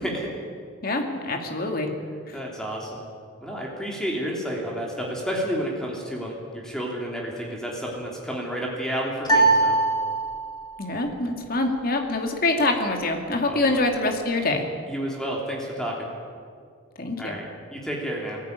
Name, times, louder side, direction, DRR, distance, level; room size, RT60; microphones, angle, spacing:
voice 1, 0.8-1.9 10.8-14.6 17.0-17.3, left 2 dB, 50° left, 4 dB, 2.3 m, -25 dB
voice 2, 2.3-3.0 3.4-9.8 13.5-13.8 14.9-16.1 17.2-18.4, equal, 5° left, -2 dB, 3.1 m, -31 dB
sound 1, 9.2-10.7, right 3 dB, 20° left, 3.5 m, -21 dB
20.5 x 14.5 x 9.4 m, 2.2 s
head